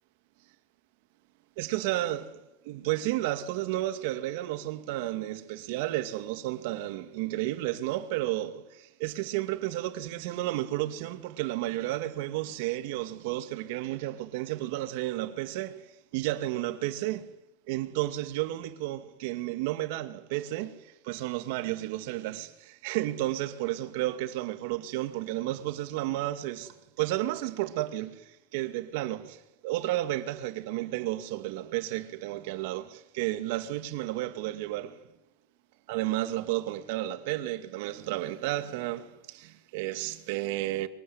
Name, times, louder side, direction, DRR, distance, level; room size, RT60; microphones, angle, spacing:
voice 1, 1.6-2.4 2.6-17.3 17.7-35.0 35.9-40.9, right 15 dB, 65° right, 2.2 m, -32 dB
23.5 x 19.5 x 9.7 m
supercardioid pair, 160°, 0 cm